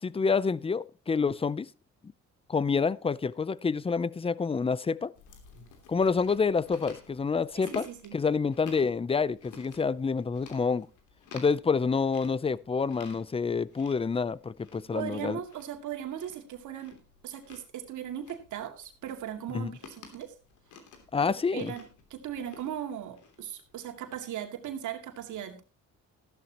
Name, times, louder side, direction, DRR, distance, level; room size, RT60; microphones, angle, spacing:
voice 1, 0.0-1.7 2.5-5.1 5.9-10.9 11.3-15.4 19.5-19.7 21.1-21.7, left 5 dB, 20° left, 0.5 m, -28 dB
Chewing mastication, 5.2-24.1, left 6 dB, 80° left, 3.0 m, -51 dB
voice 2, 7.7-8.2 14.9-17.0 17.2-20.3 21.5-25.6, right 10 dB, 75° right, 2.3 m, -38 dB
14.5 x 12.0 x 2.9 m
cardioid pair, 90°, 30 cm